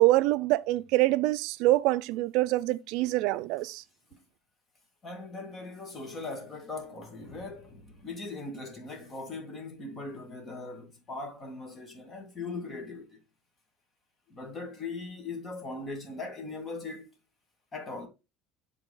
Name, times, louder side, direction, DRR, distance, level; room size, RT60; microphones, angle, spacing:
voice 1, 0.0-3.8, right 17 dB, 70° right, 0.4 m, -25 dB
voice 2, 5.0-13.2 14.3-17.1 17.7-18.1, left 3 dB, 30° left, 2.1 m, -40 dB
7.6 x 4.1 x 3.8 m
cardioid pair, 125°, 0 cm